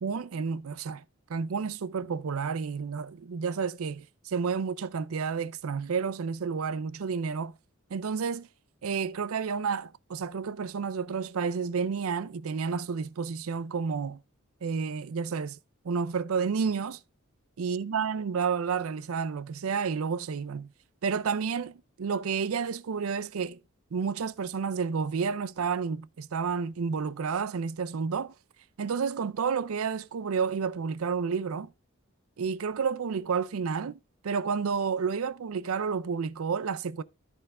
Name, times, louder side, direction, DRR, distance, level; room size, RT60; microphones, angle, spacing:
voice 1, 0.0-1.0 1.3-7.5 7.9-8.5 8.8-14.2 14.6-15.6 15.8-17.0 17.6-20.7 21.0-23.6 23.9-28.3 28.8-31.7 32.4-34.0 34.2-37.0, right 5 dB, 75° right, 0.5 m, -30 dB
13.0 x 4.5 x 3.6 m
head